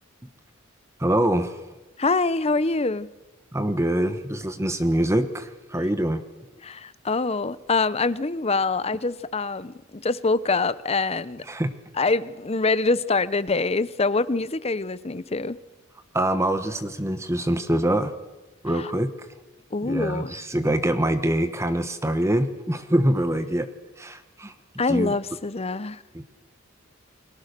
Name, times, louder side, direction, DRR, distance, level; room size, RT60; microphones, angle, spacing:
voice 1, 1.0-1.6 3.5-6.2 11.5-11.7 16.1-18.1 18.6-19.1 19.8-23.7 24.0-24.5 24.9-25.1 26.1-26.2, right 1 dB, 15° right, 1.2 m, -24 dB
voice 2, 2.0-3.1 6.6-11.4 12.0-15.6 18.7-18.9 19.7-20.4 24.8-26.0, left 3 dB, 30° left, 0.8 m, -25 dB
30.0 x 21.5 x 6.8 m
head